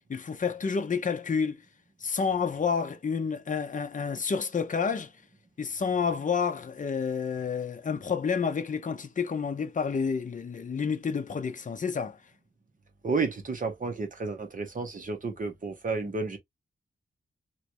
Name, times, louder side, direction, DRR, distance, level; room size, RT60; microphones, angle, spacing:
voice 1, 0.1-1.6 2.0-5.1 5.6-12.2, left 6 dB, 40° left, 0.6 m, -29 dB
voice 2, 13.0-16.4, right 4 dB, 45° right, 1.1 m, -31 dB
3.1 x 2.5 x 3.0 m
wide cardioid pair, 130°, 20 cm